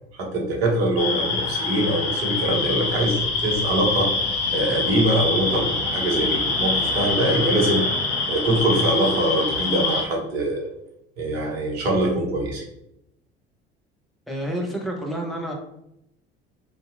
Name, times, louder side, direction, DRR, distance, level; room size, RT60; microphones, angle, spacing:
voice 1, 0.1-4.1 4.5-7.8 8.3-10.6 11.2-12.6, right 1 dB, 70° right, -1 dB, 0.8 m, -23 dB
sound 1, 1.0-10.0, left 3 dB, 45° left, 1.0 m, -25 dB
voice 2, 14.3-15.5, right 1 dB, ahead, 0 dB, 0.5 m, -29 dB
2.6 x 2.2 x 2.4 m, 0.80 s
figure-of-eight pair, 60°, 33 cm